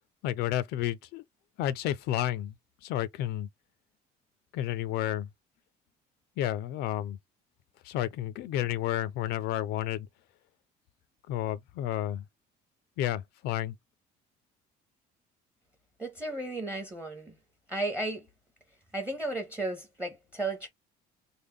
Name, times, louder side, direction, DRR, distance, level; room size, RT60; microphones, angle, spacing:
voice 1, 0.2-1.2 1.6-2.5 2.8-3.5 4.5-5.3 6.4-7.2 7.8-10.1 11.3-12.2 13.0-13.7, left 13 dB, 75° left, 0.5 m, -31 dB
voice 2, 16.0-17.4 17.7-18.3 18.9-20.7, right 2 dB, 10° right, 0.7 m, -34 dB
3.4 x 2.1 x 3.6 m
cardioid pair, 155°, 17 cm